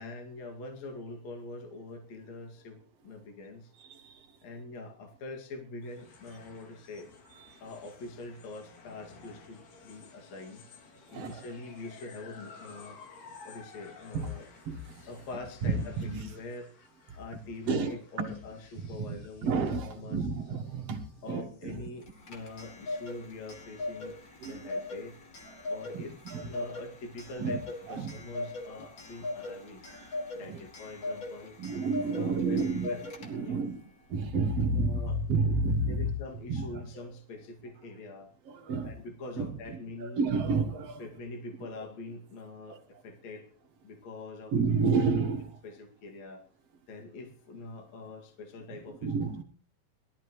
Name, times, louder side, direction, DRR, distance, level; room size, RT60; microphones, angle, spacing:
voice 1, 0.0-3.7 4.4-7.1 7.6-10.6 11.1-13.0 13.4-14.4 15.1-16.7 17.1-19.5 19.8-20.2 21.2-24.2 24.5-25.2 25.7-26.1 26.4-29.8 30.3-31.6 32.1-33.0 33.4-33.6 34.7-35.2 35.9-38.3 38.8-40.2 41.0-43.5 43.8-44.5 45.6-46.4 46.9-49.2, left 2 dB, 55° left, 3.4 m, -44 dB
voice 2, 3.8-4.2 7.4-7.6 11.1-11.5 14.1-14.3 14.7-15.0 15.6-16.3 17.6-18.4 18.7-21.8 24.4-24.6 25.5-25.7 25.9-26.7 27.4-28.2 28.7-28.9 29.2-29.6 29.9-30.1 30.4-30.6 31.6-32.9 33.2-33.8 34.1-36.1 36.5-36.8 38.5-39.0 39.4-41.0 42.7-42.8 44.5-45.6 49.0-49.4, right 4 dB, 55° right, 2.3 m, -31 dB
sound 1, 5.8-22.3, left 4 dB, 80° left, 4.2 m, -54 dB
Clock, 22.0-33.6, left 2 dB, 35° left, 3.1 m, -40 dB
21.5 x 14.0 x 3.1 m
omnidirectional pair, 3.7 m